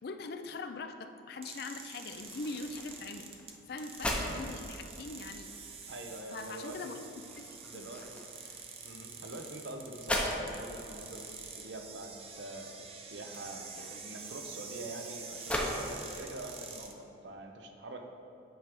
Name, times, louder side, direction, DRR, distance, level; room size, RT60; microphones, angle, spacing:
voice 1, 0.0-3.3 3.7-5.5 6.3-7.0 7.4-8.0, left 3 dB, 55° left, 8 dB, 0.4 m, -42 dB
sound 1, 1.4-16.9, right 5 dB, 30° right, 0.5 m, -47 dB
sound 2, 2.1-15.7, left 1 dB, 5° left, 0.7 m, -41 dB
voice 2, 5.9-7.0 7.6-8.2 8.8-18.1, right 2 dB, 70° right, 4 dB, 0.7 m, -45 dB
8.8 x 3.4 x 5.2 m, 3.0 s
head